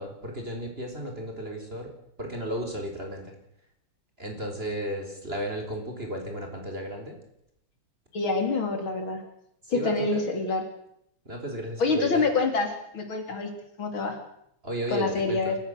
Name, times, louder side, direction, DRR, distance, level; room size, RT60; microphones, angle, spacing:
voice 1, 0.0-1.9 2.2-3.3 4.2-7.2 9.6-10.2 11.3-12.3 14.6-15.6, equal, 25° right, 3 dB, 4.1 m, -34 dB
voice 2, 8.1-9.2 9.7-10.6 11.8-13.5 13.8-14.2 14.9-15.6, left 3 dB, 65° left, 5 dB, 3.8 m, -26 dB
29.0 x 15.0 x 6.6 m, 0.76 s
omnidirectional pair, 2.4 m